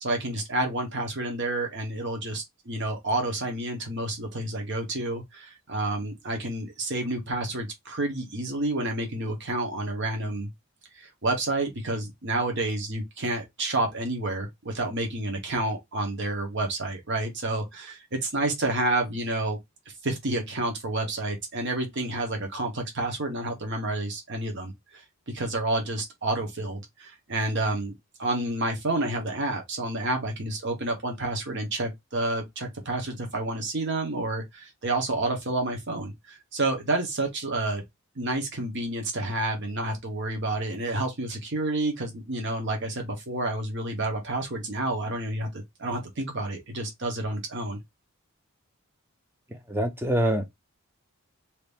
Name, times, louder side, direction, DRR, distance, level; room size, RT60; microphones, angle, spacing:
voice 1, 0.0-10.5 11.0-19.6 20.0-24.7 25.3-37.8 38.2-47.8, right 2 dB, 55° right, 1.0 m, -29 dB
voice 2, 49.7-50.5, right 1 dB, 10° right, 0.6 m, -24 dB
2.9 x 2.5 x 3.4 m
head